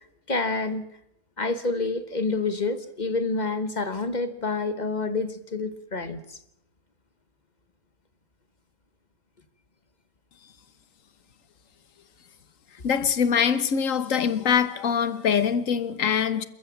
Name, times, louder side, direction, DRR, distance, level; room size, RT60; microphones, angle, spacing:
voice 1, 0.3-0.8 1.4-6.4, left 3 dB, 30° left, 1.2 m, -28 dB
voice 2, 12.8-16.5, left 7 dB, 60° left, 1.5 m, -23 dB
28.0 x 14.0 x 7.2 m
omnidirectional pair, 1.6 m